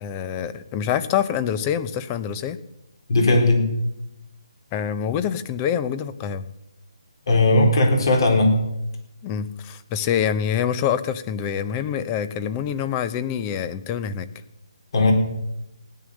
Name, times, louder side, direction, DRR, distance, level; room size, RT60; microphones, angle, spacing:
voice 1, 0.0-2.6 4.7-6.5 9.2-14.3, left 8 dB, 20° left, 13 dB, 0.7 m, -26 dB
voice 2, 3.1-3.6 7.3-8.5 14.9-15.1, left 2 dB, 50° left, 3 dB, 4.0 m, -17 dB
16.5 x 11.0 x 6.5 m, 0.89 s
hypercardioid pair, 160°, 3 cm